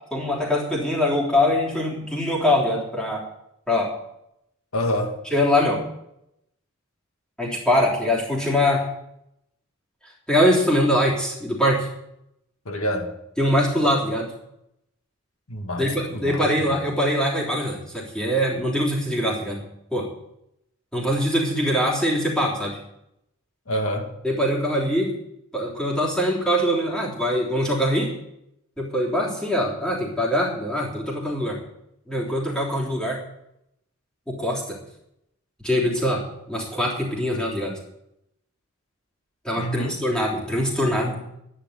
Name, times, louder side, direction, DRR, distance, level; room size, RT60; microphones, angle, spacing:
voice 1, 0.1-3.2 3.7-3.9 5.3-5.8 7.4-8.9 10.3-11.9 13.4-14.3 15.8-19.7 19.9-20.1 20.9-22.8 24.2-25.1 25.5-28.1 28.8-31.6 32.1-33.2 34.3-34.8 35.6-37.8 39.4-41.2, equal, 5° left, 3.4 m, -23 dB
voice 2, 4.7-5.2 12.7-13.1 15.5-16.7 23.7-24.1 39.6-40.0, equal, 85° left, 1.9 m, -27 dB
11.5 x 10.0 x 8.0 m
head